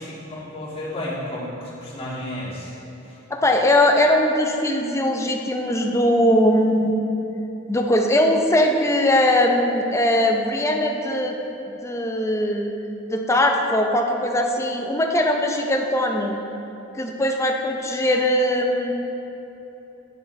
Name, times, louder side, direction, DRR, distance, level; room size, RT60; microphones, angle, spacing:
voice 1, 0.0-2.7 3.1-3.2, left 1 dB, 30° left, -8 dB, 1.9 m, -32 dB
voice 2, 3.3-7.0 7.7-11.4 11.7-12.7 13.1-16.4 17.0-18.9, left 1 dB, 15° left, 2 dB, 0.5 m, -20 dB
9.6 x 6.9 x 3.2 m, 3.0 s
head